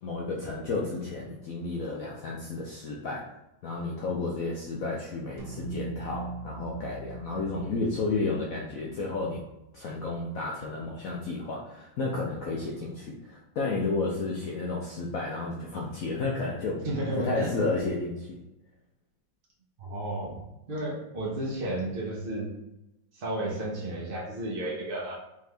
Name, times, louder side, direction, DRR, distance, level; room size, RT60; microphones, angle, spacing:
voice 1, 0.0-3.3 3.6-9.4 9.7-16.8 17.2-18.4, left 3 dB, 75° left, -3 dB, 0.8 m, -32 dB
sound 1, 5.4-10.0, right 3 dB, 85° right, 1.7 m, -41 dB
voice 2, 16.8-17.5 19.8-20.4 20.7-22.5 23.1-25.2, right 1 dB, 55° right, -4 dB, 0.6 m, -32 dB
3.7 x 3.4 x 3.3 m, 0.93 s
omnidirectional pair, 2.0 m